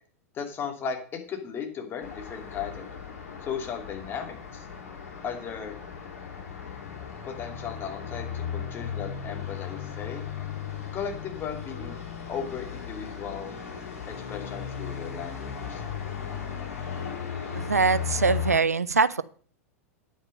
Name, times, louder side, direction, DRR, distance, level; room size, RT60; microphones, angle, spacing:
voice 1, 0.3-2.9 3.4-4.7 5.2-5.7 7.2-10.3 10.9-12.0 12.3-13.5 14.1-15.9, left 7 dB, 30° left, 3 dB, 2.8 m, -36 dB
Traffic noise roadway noise, 2.0-18.6, left 7 dB, 70° left, 4.5 m, -36 dB
voice 2, 17.5-19.2, right 4 dB, 85° right, 18 dB, 0.5 m, -23 dB
9.6 x 8.8 x 5.4 m, 0.44 s
figure-of-eight pair, 95°, 8 cm